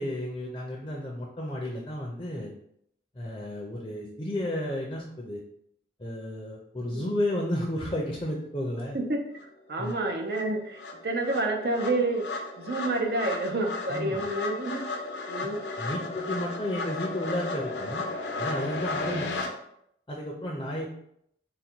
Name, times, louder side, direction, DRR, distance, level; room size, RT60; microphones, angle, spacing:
voice 1, 0.0-2.5 3.2-5.4 6.0-9.0 9.8-9.9 13.9-14.2 15.8-18.1 18.4-19.3 20.1-20.9, left 1 dB, 25° left, -1 dB, 0.5 m, -32 dB
voice 2, 8.9-9.3 9.7-14.8 15.3-15.6 19.0-19.4, right 2 dB, 60° right, 3 dB, 0.6 m, -29 dB
sound 1, 9.4-9.5 9.8-19.5, left 3 dB, 80° left, 0.6 m, -35 dB
3.9 x 2.2 x 4.4 m, 0.73 s
head